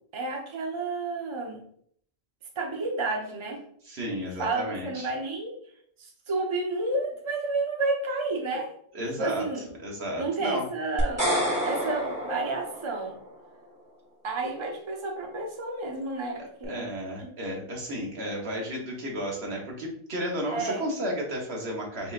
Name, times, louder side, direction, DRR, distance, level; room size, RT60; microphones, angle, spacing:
voice 1, 0.1-1.6 2.6-3.6 4.4-5.5 6.0-8.7 9.2-9.7 10.2-11.3 11.7-13.1 14.2-16.9 17.2-17.3 20.5-20.8, right 3 dB, 30° right, 0 dB, 0.8 m, -31 dB
voice 2, 3.8-5.1 8.9-9.5 9.8-10.7 16.7-22.1, equal, 70° right, -1 dB, 1.4 m, -33 dB
sound 1, 11.0-13.3, equal, 15° right, 1.5 m, -29 dB
5.1 x 3.3 x 2.5 m, 0.63 s
omnidirectional pair, 1.1 m